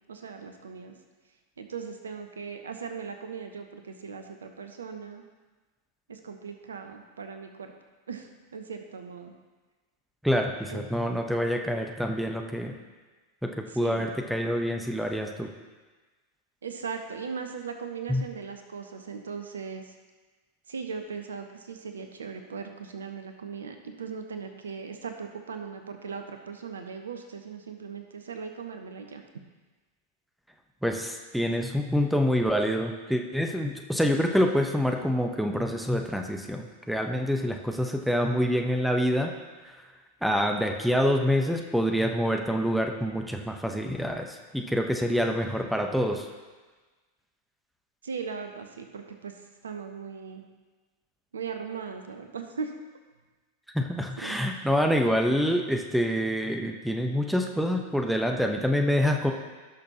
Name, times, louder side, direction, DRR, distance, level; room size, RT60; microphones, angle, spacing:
voice 1, 0.1-0.9 1.6-5.2 6.1-7.7 8.1-9.4 10.7-10.9 13.7-14.1 16.6-19.9 20.7-29.2 48.0-49.3 49.6-50.4 51.3-52.7 54.2-54.4, right 5 dB, 70° right, 6 dB, 0.9 m, -38 dB
voice 2, 10.2-12.7 13.4-15.5 18.1-18.2 30.8-39.3 40.2-46.2 53.7-59.3, equal, ahead, 3 dB, 0.9 m, -26 dB
17.5 x 6.3 x 2.9 m, 1.3 s
figure-of-eight pair, 90°, 0 cm